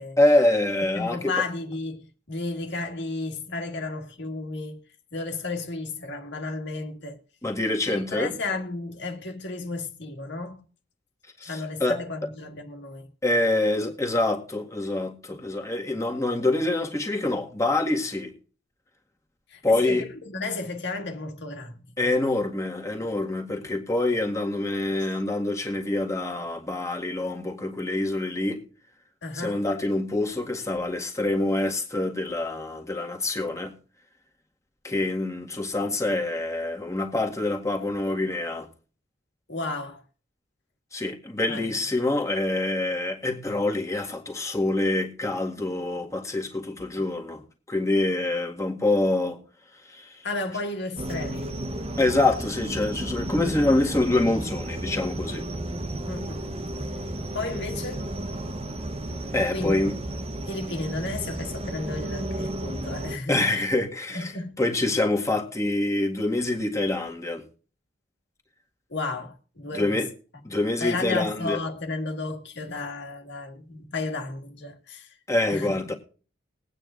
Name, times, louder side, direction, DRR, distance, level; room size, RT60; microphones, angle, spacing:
voice 1, 0.2-1.3 7.4-8.3 11.4-12.0 13.2-18.3 19.6-20.1 22.0-28.6 29.3-33.7 34.8-38.7 40.9-47.4 47.7-49.4 49.9-50.2 52.0-55.4 59.3-59.9 63.3-67.4 69.7-70.1 70.4-71.6 75.3-75.9, left 2 dB, 15° left, 1.8 m, -26 dB
voice 2, 0.9-4.8 5.1-7.2 7.9-10.6 11.4-13.1 19.5-21.8 29.2-29.7 39.5-40.0 41.5-41.8 50.2-51.5 56.1-56.5 57.3-58.0 59.5-59.8 60.5-63.7 64.1-64.6 68.9-70.0 70.8-75.1 75.5-75.8, left 3 dB, 65° left, 1.9 m, -33 dB
sound 1, 51.0-63.2, right 1 dB, 30° right, 1.0 m, -33 dB
21.0 x 9.0 x 2.5 m
head